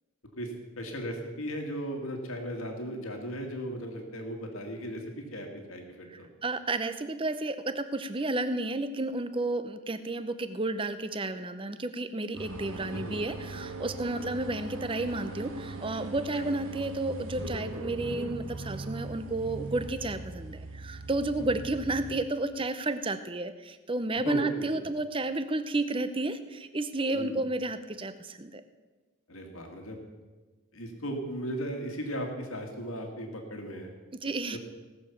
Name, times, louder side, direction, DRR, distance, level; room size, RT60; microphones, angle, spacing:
voice 1, 0.4-6.3 12.6-13.2 14.1-14.2 16.3-16.5 21.4-21.5 24.2-24.9 27.1-27.4 29.3-30.0 30.7-33.9 34.5-34.6, equal, 70° left, 3 dB, 2.1 m, -37 dB
voice 2, 6.1-28.6 34.2-34.6, right 2 dB, 25° right, 11 dB, 0.6 m, -32 dB
sound 1, 12.3-22.1, right 2 dB, 70° right, 1.3 m, -40 dB
18.0 x 6.9 x 7.1 m, 1.3 s
head